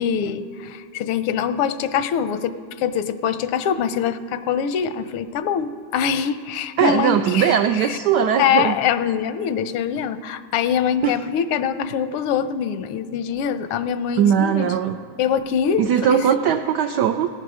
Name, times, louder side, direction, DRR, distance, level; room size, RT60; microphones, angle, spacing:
voice 1, 0.0-8.0 8.4-14.7 15.2-16.3, left 8 dB, 85° left, 12 dB, 1.5 m, -24 dB
voice 2, 6.8-8.7 11.0-11.1 14.2-15.0 15.8-17.3, right 8 dB, 90° right, 7 dB, 0.9 m, -19 dB
18.0 x 11.0 x 4.9 m, 2.4 s
omnidirectional pair, 2.4 m